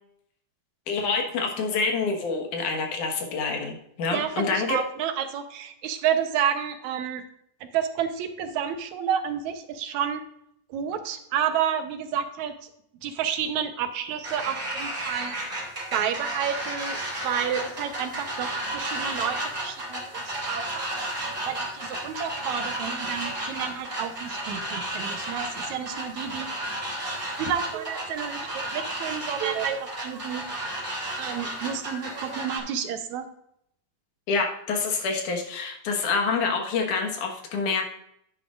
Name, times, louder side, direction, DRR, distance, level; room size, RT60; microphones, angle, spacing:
voice 1, 0.9-4.8 34.3-37.8, left 4 dB, 85° left, 3 dB, 2.9 m, -27 dB
voice 2, 4.1-7.2 7.7-10.2 10.7-12.5 13.0-15.4 15.9-17.0 17.2-20.9 21.5-26.5 27.4-30.4 31.2-33.2, right 8 dB, 75° right, 8 dB, 2.2 m, -30 dB
sound 1, 14.2-32.6, right 1 dB, 20° right, 2.8 m, -33 dB
10.5 x 9.8 x 2.5 m, 0.73 s
omnidirectional pair, 3.5 m